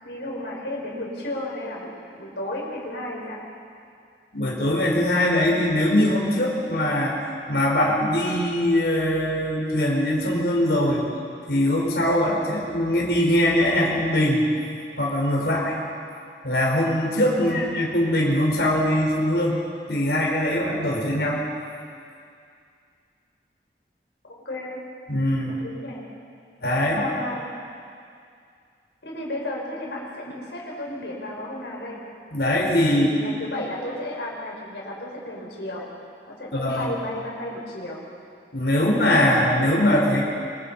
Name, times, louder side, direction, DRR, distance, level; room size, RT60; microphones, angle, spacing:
voice 1, 0.0-3.4 17.4-17.9 24.3-24.8 25.6-26.0 26.9-27.5 29.0-32.0 32.8-35.8 36.3-38.0, left 1 dB, 85° left, -3 dB, 5.8 m, -33 dB
voice 2, 4.3-11.1 11.5-14.5 15.0-15.8 16.4-19.6 19.9-21.4 25.1-25.6 26.6-27.0 32.3-33.1 36.5-36.9 38.5-40.2, left 1 dB, 70° left, -2 dB, 5.0 m, -22 dB
25.0 x 24.0 x 5.6 m, 2.4 s
head